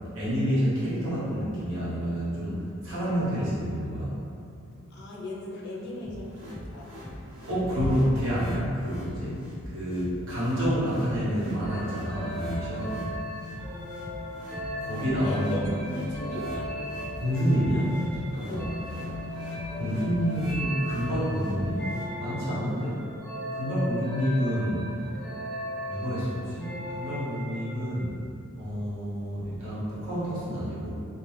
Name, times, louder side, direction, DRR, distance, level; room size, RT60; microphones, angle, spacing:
voice 1, 0.1-4.1 7.5-13.0 14.8-15.7 17.1-18.0 18.3-18.7 19.7-21.9 22.2-23.0 23.5-25.1 25.9-28.1 28.6-30.9, equal, 80° right, -10 dB, 1.0 m, -28 dB
voice 2, 4.9-7.1 7.4-7.5 15.2-16.7 18.5-18.8, left 1 dB, 50° left, -5 dB, 0.5 m, -38 dB
sound 1, 6.0-22.0, equal, 25° right, 1.2 m, -42 dB
sound 2, 11.6-28.0, left 1 dB, 5° left, 0.5 m, -37 dB
2.3 x 2.3 x 3.2 m, 2.6 s
head